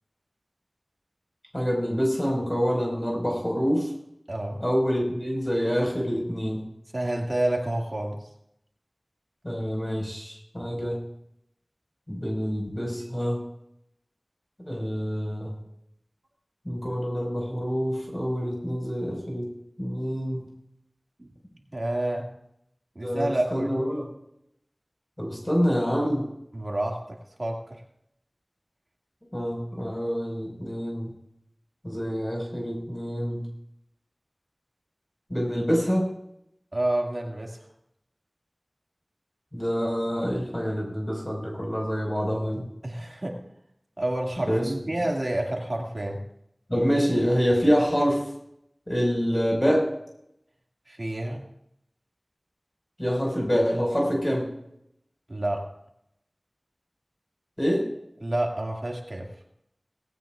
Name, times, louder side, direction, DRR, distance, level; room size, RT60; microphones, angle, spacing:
voice 1, 1.5-3.9 4.6-6.7 9.4-11.0 12.1-13.4 14.6-15.5 16.6-19.5 19.8-20.5 23.0-24.0 25.2-26.3 29.3-31.1 31.8-33.4 35.3-36.1 39.5-42.6 44.4-44.7 46.7-48.3 48.9-49.9 53.0-54.5 57.6-57.9, equal, 25° left, -1 dB, 5.1 m, -26 dB
voice 2, 4.3-4.6 6.9-8.2 21.2-21.3 21.7-22.3 23.0-23.7 26.5-27.8 36.7-37.6 42.8-43.4 44.0-46.2 50.9-51.4 55.3-55.7 58.2-59.3, right 1 dB, 60° right, 0 dB, 2.1 m, -29 dB
18.5 x 17.0 x 2.5 m, 0.79 s
wide cardioid pair, 45°, 0 cm